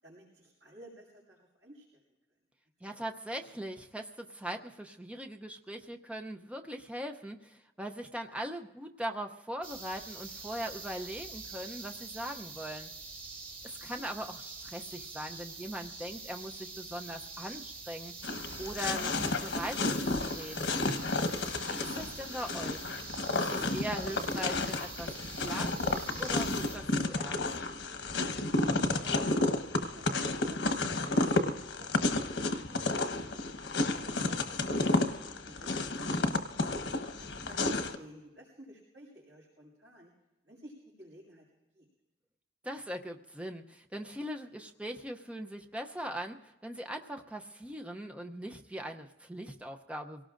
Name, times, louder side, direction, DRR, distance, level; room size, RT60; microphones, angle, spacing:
voice 1, 0.0-2.0 2.9-3.0 13.8-14.0 22.0-22.2 29.0-31.4 31.8-35.1 35.4-36.4 37.1-40.1 40.4-41.5 41.7-41.9, equal, 65° right, -6 dB, 6.5 m, -54 dB
voice 2, 2.8-12.9 13.6-18.1 18.6-20.8 21.7-23.0 23.4-27.4 42.6-50.2, right 1 dB, 5° right, 4 dB, 0.6 m, -40 dB
sound 1, 9.6-26.8, right 4 dB, 50° right, 3.2 m, -45 dB
sound 2, 18.2-38.0, left 2 dB, 85° left, 1.1 m, -31 dB
26.0 x 18.0 x 2.5 m, 1.0 s
head